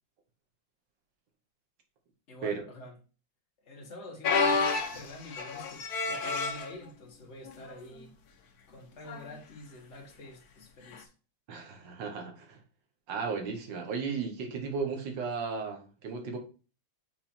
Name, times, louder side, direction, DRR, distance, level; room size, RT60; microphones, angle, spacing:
voice 1, 2.3-3.0 3.6-8.1 8.7-11.1, left 1 dB, 40° left, 1.8 m, -47 dB
sound 1, 4.2-6.7 7.5-7.7 8.0-8.1 9.1-9.3 10.9-11.0, left 4 dB, 60° left, 1.3 m, -29 dB
voice 2, 11.5-12.6 13.1-16.4, right 5 dB, 70° right, 2.0 m, -35 dB
6.0 x 4.0 x 4.3 m
omnidirectional pair, 2.1 m